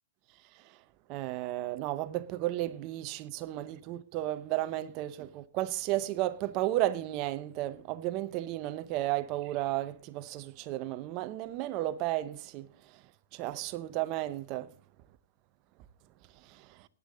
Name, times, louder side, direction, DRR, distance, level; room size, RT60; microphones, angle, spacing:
voice 1, 1.1-12.7 13.3-14.7 16.5-16.7, right 15 dB, 30° right, 0.7 m, -33 dB
18.5 x 8.4 x 3.7 m
hypercardioid pair, 160°, 0 cm